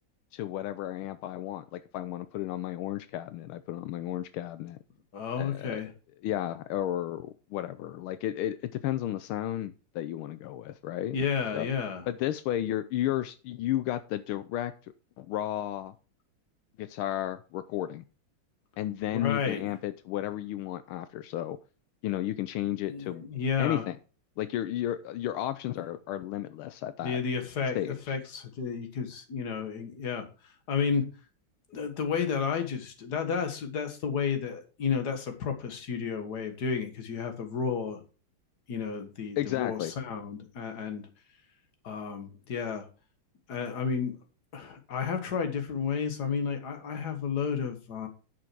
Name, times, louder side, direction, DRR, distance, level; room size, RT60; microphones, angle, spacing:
voice 1, 0.3-4.8 5.4-5.8 6.2-11.2 11.5-11.7 12.1-14.7 15.2-15.9 16.8-18.0 18.8-21.6 22.0-23.3 23.6-24.0 24.4-27.2 27.7-28.2 39.4-39.9, left 13 dB, 85° left, 12 dB, 1.5 m, -33 dB
voice 2, 5.1-5.9 11.1-12.0 19.1-19.7 22.9-23.8 27.0-31.0 31.7-38.0 38.7-41.1 41.8-42.9 43.5-44.1 44.5-48.1, left 6 dB, 50° left, 6 dB, 2.0 m, -32 dB
10.5 x 6.3 x 4.6 m, 0.35 s
omnidirectional pair, 2.3 m